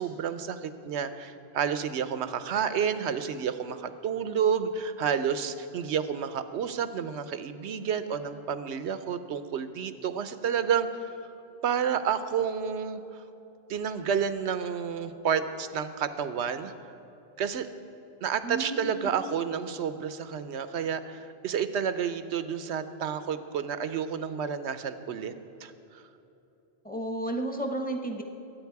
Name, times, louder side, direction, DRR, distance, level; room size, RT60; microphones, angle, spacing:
voice 1, 0.0-11.2 11.6-13.2 13.7-16.7 17.4-17.7 18.2-25.3 25.6-26.0, right 7 dB, 85° right, 11 dB, 1.0 m, -30 dB
voice 2, 18.4-19.1 26.8-28.2, right 2 dB, 10° left, 4 dB, 1.0 m, -32 dB
22.0 x 8.9 x 4.7 m, 2.9 s
omnidirectional pair, 1.1 m